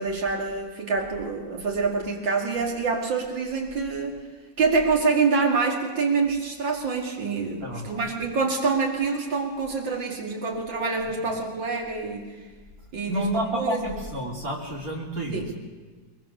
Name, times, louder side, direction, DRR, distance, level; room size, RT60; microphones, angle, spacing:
voice 1, 0.0-4.2 4.6-12.3 12.9-14.0 15.3-15.5, right 4 dB, 80° right, 0 dB, 3.4 m, -26 dB
voice 2, 7.6-8.1 13.1-15.4, equal, 50° right, 0 dB, 3.6 m, -29 dB
23.0 x 21.5 x 6.6 m, 1.4 s
omnidirectional pair, 2.0 m